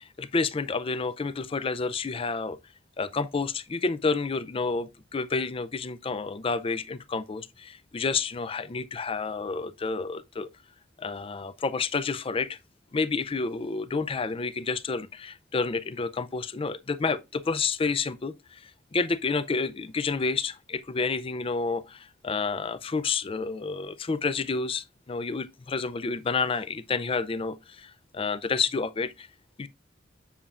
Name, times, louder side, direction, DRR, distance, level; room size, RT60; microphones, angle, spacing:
voice 1, 0.0-2.6 3.0-10.5 11.0-12.6 12.9-29.3 29.6-29.7, left 4 dB, 30° left, 0.4 m, -30 dB
7.2 x 7.0 x 2.4 m
head